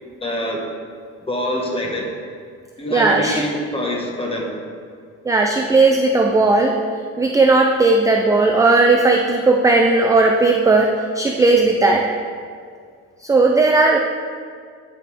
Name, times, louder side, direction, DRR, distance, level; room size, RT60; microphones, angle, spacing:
voice 1, 0.2-0.7 1.3-2.1 2.8-4.5, left 1 dB, 20° left, -1 dB, 1.2 m, -25 dB
voice 2, 2.9-3.4 5.3-6.8 7.2-12.1 13.2-14.0, right 3 dB, 10° right, 1 dB, 0.4 m, -16 dB
10.5 x 5.2 x 3.4 m, 2.1 s
cardioid pair, 125°, 30 cm